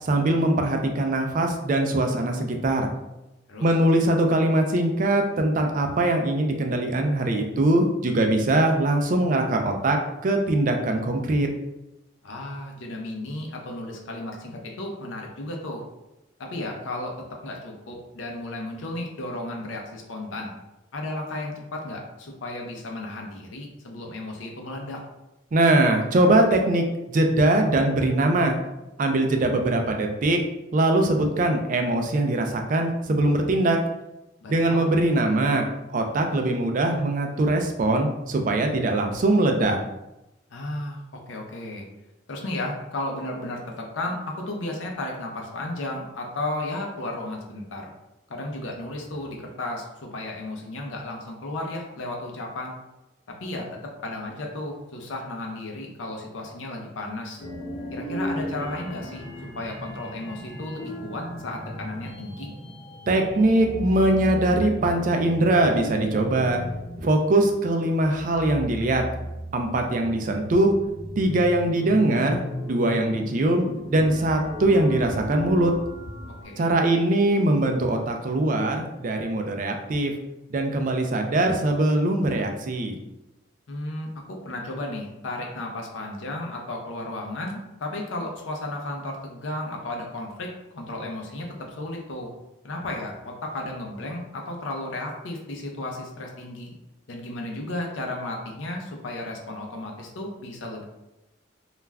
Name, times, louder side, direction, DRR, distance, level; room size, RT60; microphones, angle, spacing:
voice 1, 0.0-2.9 3.6-11.5 25.5-28.6 29.0-30.4 30.7-33.8 34.5-39.8 63.1-66.6 67.0-69.0 69.5-70.7 71.2-75.7 76.6-80.1 80.5-83.0, right 1 dB, 40° right, 4 dB, 0.3 m, -22 dB
voice 2, 12.2-15.8 16.4-20.5 20.9-25.0 34.4-34.9 40.5-41.9 42.3-47.9 48.3-52.7 53.3-57.5 57.9-59.2 59.5-62.5 76.4-76.6 83.7-92.3 92.6-96.7 97.1-100.8, left 2 dB, 75° left, 1 dB, 0.5 m, -34 dB
sound 1, 57.4-76.4, equal, 55° left, 0.8 m, -36 dB
2.3 x 2.1 x 3.3 m, 0.95 s
head